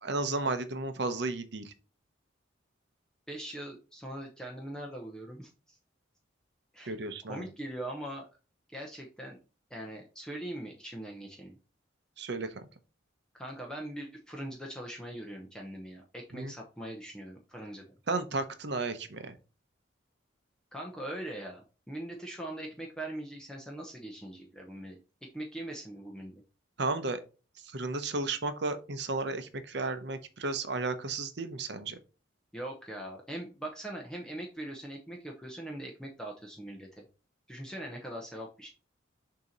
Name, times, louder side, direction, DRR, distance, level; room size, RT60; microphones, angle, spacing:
voice 1, 0.0-1.7 6.9-7.5 12.2-12.6 16.3-16.5 18.1-19.4 26.8-27.2 27.6-32.0, right 3 dB, 55° right, 10 dB, 0.8 m, -33 dB
voice 2, 3.3-5.8 6.7-7.0 7.3-8.2 8.7-9.4 9.7-11.6 13.3-17.8 20.7-25.0 25.3-26.4 32.5-37.0 37.5-38.7, right 1 dB, 5° left, -1 dB, 0.7 m, -41 dB
6.8 x 2.9 x 5.1 m, 0.34 s
head